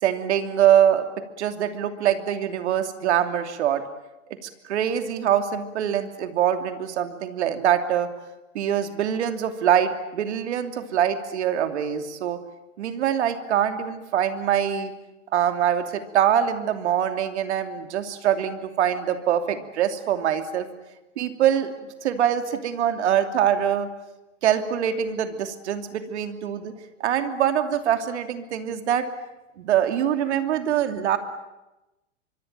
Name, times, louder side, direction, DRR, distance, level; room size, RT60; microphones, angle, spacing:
voice 1, 0.0-1.1 1.4-3.8 4.7-8.1 8.5-12.4 12.8-14.9 15.3-20.7 21.2-23.9 24.4-26.7 27.0-29.0 29.6-31.2, right 10 dB, 65° right, 8 dB, 2.9 m, -24 dB
24.5 x 23.5 x 9.2 m, 1.0 s
hypercardioid pair, 115°, 36 cm